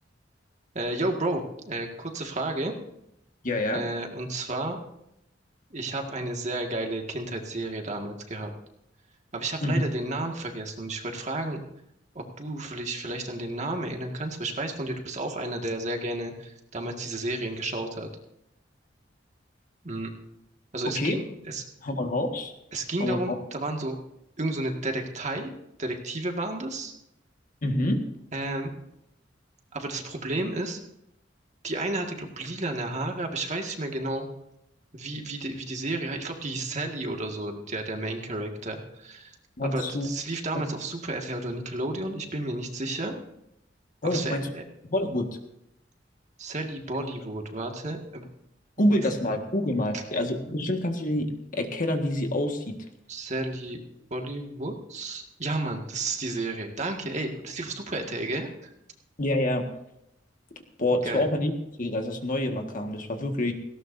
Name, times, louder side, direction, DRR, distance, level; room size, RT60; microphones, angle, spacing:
voice 1, 0.7-2.7 3.7-4.8 5.7-8.5 9.3-11.6 12.2-18.1 19.8-20.1 20.7-21.6 22.7-24.0 24.4-25.5 25.8-26.9 28.3-28.7 29.7-30.8 31.6-34.3 34.9-43.2 44.0-44.6 46.4-48.2 49.9-50.0 50.5-50.6 53.1-53.8 54.1-58.7 61.0-61.3, right 2 dB, 40° right, 3 dB, 1.9 m, -32 dB
voice 2, 3.4-3.8 9.6-9.8 20.8-21.2 21.8-22.5 23.0-23.3 27.6-28.0 39.6-40.1 40.5-40.6 44.0-44.5 44.9-45.3 48.8-51.3 51.5-52.9 59.2-59.7 60.8-61.5 61.8-63.5, left 1 dB, 45° left, 4 dB, 1.7 m, -27 dB
18.5 x 17.0 x 2.7 m, 0.80 s
head